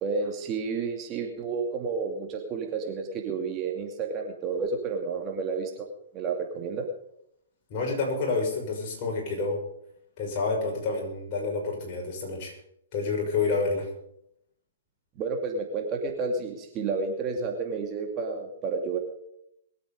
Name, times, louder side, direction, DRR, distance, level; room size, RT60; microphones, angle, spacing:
voice 1, 0.0-5.9 6.1-6.9 15.2-19.0, right 4 dB, 30° right, 2 dB, 2.6 m, -31 dB
voice 2, 7.7-9.6 10.2-12.6 12.9-13.9, left 3 dB, 40° left, 0 dB, 6.2 m, -28 dB
22.0 x 8.6 x 5.1 m, 0.74 s
hypercardioid pair, 130°, 0 cm